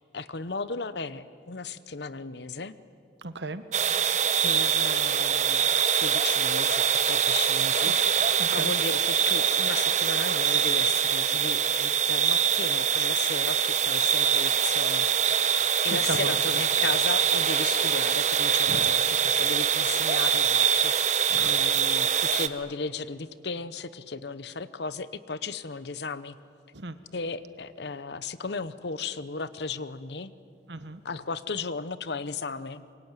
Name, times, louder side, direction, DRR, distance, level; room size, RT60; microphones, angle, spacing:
voice 1, 0.1-2.7 4.4-8.2 8.5-15.1 15.8-21.1 21.4-26.4 27.1-30.3 31.0-32.9, left 4 dB, 70° left, 15 dB, 0.9 m, -35 dB
voice 2, 3.2-3.6 7.8-7.9 8.4-8.7 15.3-16.4 18.7-18.9 21.3-21.6 22.0-22.1 26.7-27.0 30.7-31.0, right 3 dB, 80° right, 11 dB, 1.3 m, -36 dB
sound 1, 3.7-22.5, right 7 dB, 40° right, 0.9 m, -24 dB
26.0 x 23.0 x 9.1 m, 2.5 s
head